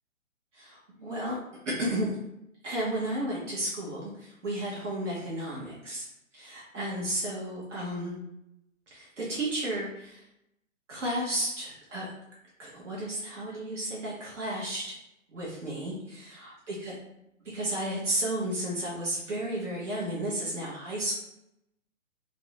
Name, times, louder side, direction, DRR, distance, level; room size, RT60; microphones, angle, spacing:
voice 1, 0.5-1.4 1.7-2.2 2.6-6.1 6.3-8.1 8.9-10.2 10.9-12.1 12.6-15.0 15.3-16.9 17.5-21.1, right 1 dB, 65° right, -5 dB, 0.8 m, -33 dB
2.6 x 2.1 x 2.7 m, 0.83 s
figure-of-eight pair, 130°, 40 cm